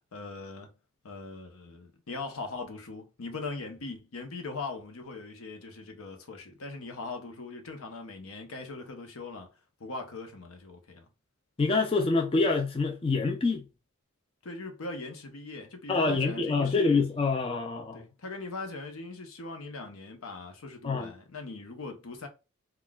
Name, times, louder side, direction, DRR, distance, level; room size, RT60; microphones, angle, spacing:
voice 1, 0.1-0.7 1.0-9.5 9.8-11.1 14.4-17.1 17.9-22.3, left 3 dB, 80° left, 0.8 m, -40 dB
voice 2, 11.6-13.6 15.9-18.0 20.8-21.1, left 3 dB, 25° left, 0.3 m, -26 dB
3.7 x 2.3 x 2.3 m
head